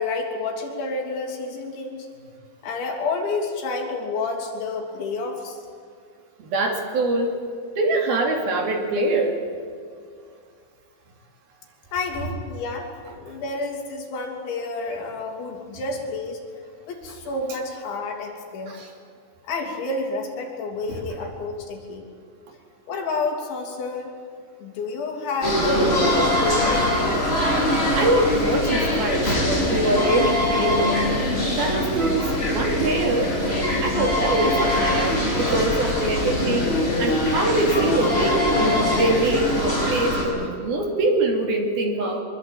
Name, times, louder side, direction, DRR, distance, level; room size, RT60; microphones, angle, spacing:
voice 1, 0.0-2.1 2.6-5.6 11.9-16.4 16.9-18.7 19.4-22.1 22.9-24.1 24.6-26.8, left 3 dB, 70° left, 1 dB, 5.5 m, -29 dB
voice 2, 6.4-7.4 7.8-9.4 18.7-18.9 20.9-21.1 25.7-26.1 27.2-27.3 27.9-31.0 31.4-33.3 33.8-36.7 37.0-38.5 38.9-42.2, right 2 dB, 55° right, 2 dB, 4.3 m, -24 dB
sound 1, 25.4-40.2, left 1 dB, 10° left, 6.9 m, -22 dB
24.5 x 22.5 x 9.2 m, 2.2 s
omnidirectional pair, 5.4 m